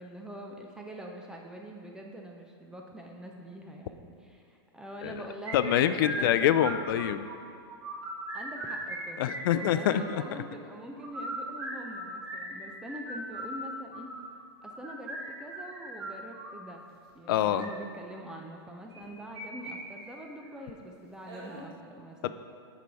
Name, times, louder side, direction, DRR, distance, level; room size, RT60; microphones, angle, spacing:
voice 1, 0.0-6.5 8.3-9.3 9.5-14.1 14.6-16.8 17.1-22.3, right 1 dB, 5° right, 1 dB, 0.4 m, -44 dB
voice 2, 5.5-7.3 9.2-10.2 17.3-17.7 22.2-22.3, left 11 dB, 55° left, 12 dB, 0.4 m, -25 dB
sound 1, 5.5-7.4 7.7-9.0 9.2-10.3 11.0-16.6 17.4-17.7 18.9-19.7 20.0-20.1 20.5-20.6 21.2-21.6, right 1 dB, 80° right, 1.8 m, -39 dB
6.7 x 4.9 x 4.6 m, 2.3 s
hypercardioid pair, 145°, 14 cm